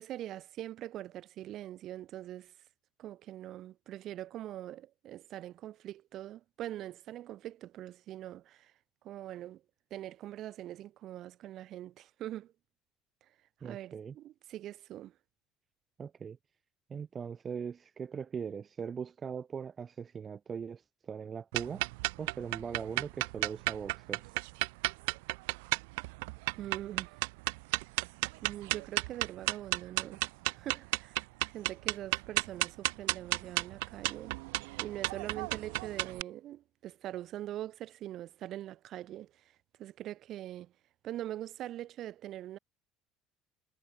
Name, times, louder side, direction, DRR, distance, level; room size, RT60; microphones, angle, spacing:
voice 1, 0.0-2.5 3.0-8.7 9.0-9.6 9.9-12.5 13.6-15.1 26.5-27.2 28.4-30.2 30.5-34.3 34.8-40.7 41.0-42.6, right 13 dB, 60° right, 7.2 m, -43 dB
voice 2, 13.6-14.2 16.0-16.4 16.9-21.8 22.2-24.3, right 6 dB, 35° right, 3.9 m, -40 dB
sound 1, 21.5-36.2, right 27 dB, 80° right, 2.2 m, -34 dB
hypercardioid pair, 75°, 0 cm